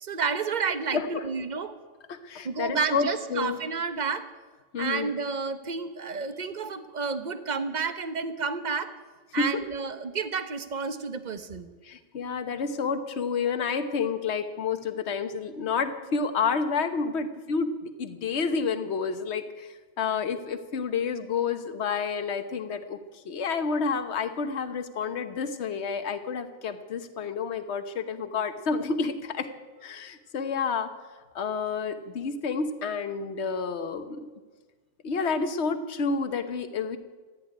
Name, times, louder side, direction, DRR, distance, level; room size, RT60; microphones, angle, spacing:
voice 1, 0.0-1.7 2.4-4.3 4.8-8.9 9.3-11.7, right 5 dB, 40° right, 11 dB, 1.1 m, -30 dB
voice 2, 0.9-1.2 2.1-3.6 4.7-5.1 9.4-9.5 11.8-17.7 18.0-19.7 20.0-23.0 23.2-29.5 29.8-30.9 31.3-34.3 35.0-37.0, left 5 dB, 65° left, 9 dB, 1.3 m, -29 dB
15.0 x 9.7 x 9.9 m, 1.4 s
omnidirectional pair, 1.3 m